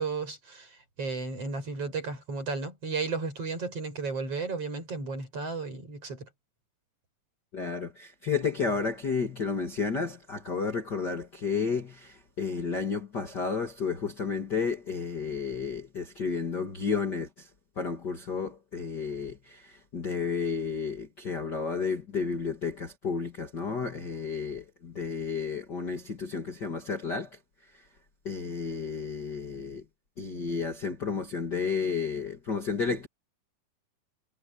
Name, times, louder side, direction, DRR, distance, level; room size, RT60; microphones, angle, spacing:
voice 1, 0.0-6.3, right 4 dB, 40° right, 7.7 m, -34 dB
voice 2, 7.5-17.5 17.8-27.3 28.2-29.8 30.2-33.1, left 5 dB, 35° left, 2.3 m, -32 dB
omnidirectional pair, 4.3 m